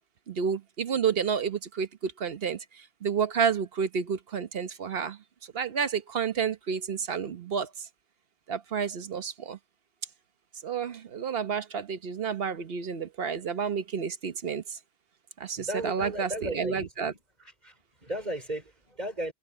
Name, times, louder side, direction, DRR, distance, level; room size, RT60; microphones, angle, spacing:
voice 1, 0.3-5.2 5.5-7.9 8.5-9.6 10.6-14.8 15.4-17.1, right 6 dB, 65° right, 1.2 m, -30 dB
voice 2, 15.6-17.2 17.6-19.3, right 1 dB, 40° right, 5.2 m, -36 dB
omnidirectional pair, 1.1 m